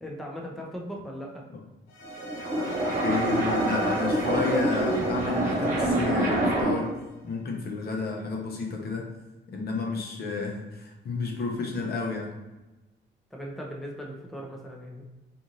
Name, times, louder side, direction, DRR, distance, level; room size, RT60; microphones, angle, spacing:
voice 1, 0.0-1.5 13.3-15.0, equal, ahead, -1 dB, 0.5 m, -38 dB
sound 1, 1.9-7.2, equal, 90° left, 0.6 m, -42 dB
sound 2, 2.0-6.9, right 1 dB, 40° right, 1.1 m, -26 dB
voice 2, 3.0-9.1 9.5-12.4, left 4 dB, 50° left, 1 dB, 0.7 m, -31 dB
2.5 x 2.5 x 2.9 m, 1.1 s
cardioid pair, 90°, 20 cm